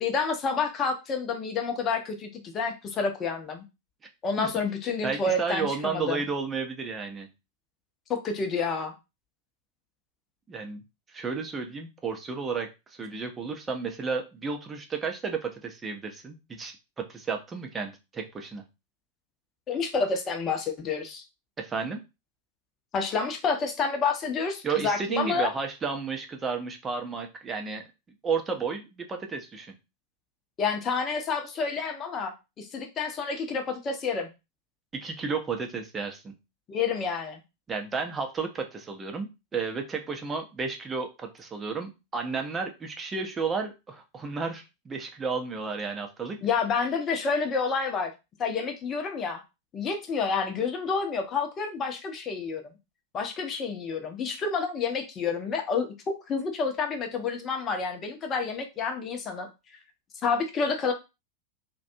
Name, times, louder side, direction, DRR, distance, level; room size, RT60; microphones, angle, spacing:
voice 1, 0.0-3.6 4.2-6.3 8.1-8.9 19.7-21.2 22.9-25.5 30.6-34.3 36.7-37.4 46.4-48.1 48.4-49.4 49.7-52.6 53.1-55.9 56.3-59.5 60.2-60.9, left 5 dB, 25° left, 4 dB, 0.6 m, -29 dB
voice 2, 5.0-7.3 10.5-10.8 11.1-18.6 21.6-22.0 24.6-27.8 28.2-29.7 34.9-36.3 37.7-46.4, right 5 dB, 20° right, 4 dB, 0.6 m, -32 dB
2.4 x 2.2 x 2.6 m, 0.25 s
figure-of-eight pair, 90°, 0 cm